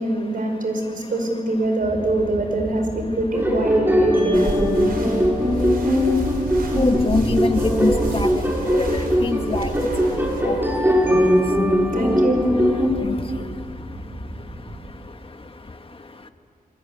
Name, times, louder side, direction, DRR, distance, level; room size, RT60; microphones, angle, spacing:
voice 1, 0.0-5.0 11.9-12.4, right 1 dB, 65° right, 4 dB, 5.2 m, -24 dB
voice 2, 0.8-1.1 5.1-12.0 12.8-16.3, left 3 dB, 35° left, 7 dB, 1.6 m, -29 dB
sound 1, 1.8-14.9, right 1 dB, 30° right, 7.2 m, -34 dB
sound 2, 3.3-12.9, equal, 15° right, 5.7 m, -20 dB
sound 3, 4.3-10.4, right 3 dB, 85° right, 4.2 m, -32 dB
27.5 x 22.0 x 9.5 m, 2.2 s
wide cardioid pair, 110°, 15 cm